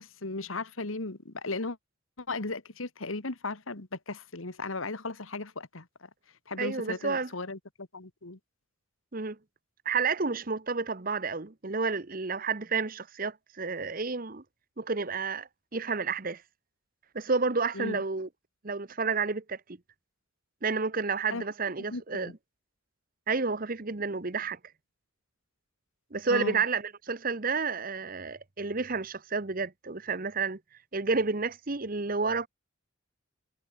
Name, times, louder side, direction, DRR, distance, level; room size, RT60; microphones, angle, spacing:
voice 1, 0.0-1.8 2.2-6.1 6.5-8.4 17.7-18.0 21.3-21.4 21.9-22.3 26.3-26.6, left 3 dB, 80° left, 1.9 m, -36 dB
voice 2, 6.6-7.3 9.1-9.4 9.8-14.4 14.8-16.4 17.1-18.3 18.6-19.6 20.6-22.3 23.3-24.6 26.1-30.6 30.9-32.5, right 4 dB, 45° right, 1.1 m, -30 dB
head